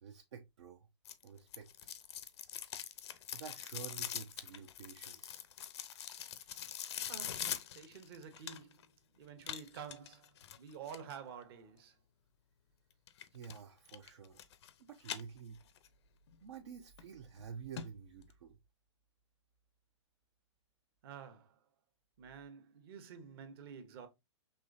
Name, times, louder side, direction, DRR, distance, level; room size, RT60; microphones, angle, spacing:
voice 1, 0.0-0.9 1.2-1.7 3.1-5.5 13.3-14.4 14.8-15.6 16.4-18.6, right 7 dB, 65° right, 0.8 m, -50 dB
sound 1, 1.1-8.9 9.4-11.2 13.1-13.6 13.9-14.7 15.0-15.9 16.3-16.4 17.0-17.1 17.4-17.5 17.8-17.9 18.2-18.3, left 10 dB, 60° left, 0.7 m, -43 dB
voice 2, 7.1-8.9 9.2-12.0 21.0-21.6 22.2-24.1, right 7 dB, 50° right, 1.1 m, -50 dB
5.5 x 3.1 x 2.6 m
hypercardioid pair, 120°, 16 cm